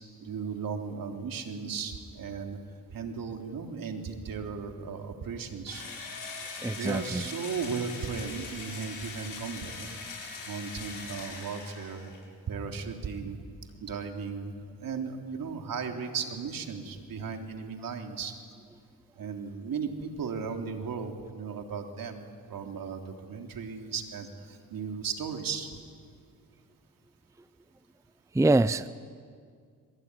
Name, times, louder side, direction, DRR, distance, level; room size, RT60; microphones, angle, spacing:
voice 1, 0.2-2.6 2.9-5.8 6.8-9.9 10.5-12.1 12.5-13.4 13.8-14.5 14.8-18.3 19.2-25.7, right 5 dB, 65° right, 3 dB, 3.4 m, -36 dB
Engine / Drill, 5.7-12.2, left 4 dB, 60° left, 7.6 m, -41 dB
voice 2, 6.6-7.2 28.3-28.9, right 2 dB, 10° right, 15 dB, 0.6 m, -24 dB
26.0 x 23.0 x 9.8 m, 2.1 s
cardioid pair, 70°, 36 cm